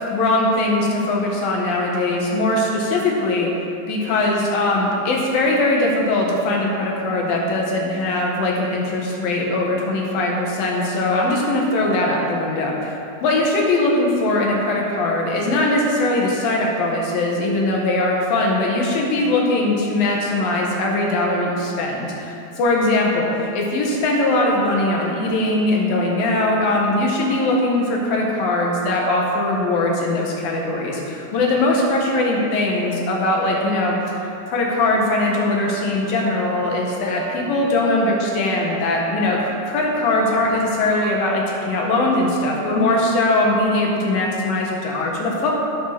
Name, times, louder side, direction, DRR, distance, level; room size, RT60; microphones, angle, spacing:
voice 1, 0.1-3.5 3.9-12.9 13.2-23.3 23.5-45.5, left 2 dB, 60° left, -1 dB, 3.0 m, -20 dB
10.5 x 9.4 x 6.0 m, 2.7 s
omnidirectional pair, 5.0 m